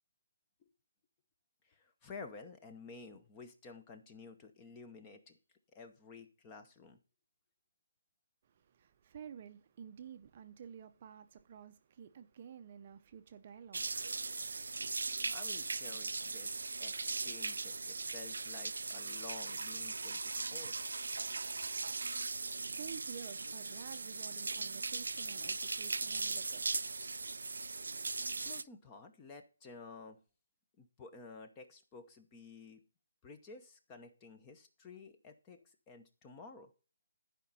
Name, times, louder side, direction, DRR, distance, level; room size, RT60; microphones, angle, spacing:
voice 1, 1.6-5.4 5.7-7.0 15.3-20.9 28.4-30.2 30.8-32.8 33.2-36.7, left 4 dB, 15° left, 0.8 m, -52 dB
voice 2, 8.4-15.1 22.4-28.0, right 8 dB, 25° right, 0.6 m, -52 dB
sound 1, 13.7-28.6, right 3 dB, 85° right, 0.4 m, -39 dB
11.5 x 5.2 x 5.4 m
hypercardioid pair, 175°, 0 cm